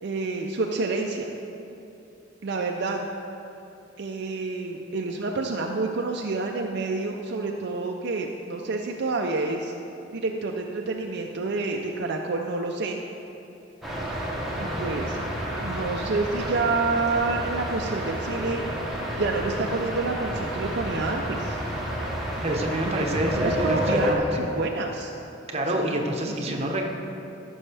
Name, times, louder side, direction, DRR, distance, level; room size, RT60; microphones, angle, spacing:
voice 1, 0.0-1.3 2.4-3.1 4.0-9.7 10.1-13.0 14.6-15.2 15.6-18.6 19.2-21.6 22.9-25.1 25.8-26.7, right 3 dB, 60° right, 2 dB, 0.5 m, -28 dB
sound 1, 13.8-24.1, equal, ahead, 1.1 m, -30 dB
voice 2, 22.4-24.5 25.5-26.8, right 1 dB, 35° right, 1 dB, 0.9 m, -27 dB
14.0 x 6.3 x 3.4 m, 2.9 s
head